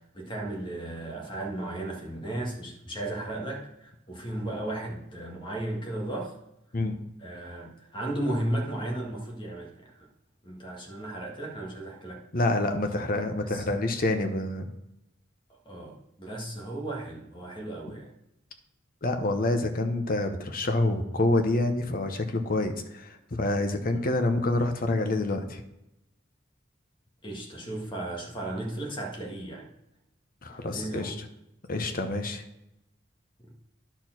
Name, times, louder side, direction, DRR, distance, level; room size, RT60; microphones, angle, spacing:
voice 1, 0.0-6.3 7.2-10.1 10.4-12.2 13.4-13.8 15.7-18.1 23.8-24.0 27.2-29.7 30.5-31.2 33.4-33.5, right 1 dB, 25° left, -1 dB, 1.8 m, -35 dB
voice 2, 12.3-14.6 19.0-25.6 30.4-31.2 31.7-32.4, left 2 dB, 45° left, 6 dB, 0.9 m, -27 dB
10.5 x 4.5 x 6.0 m, 0.87 s
head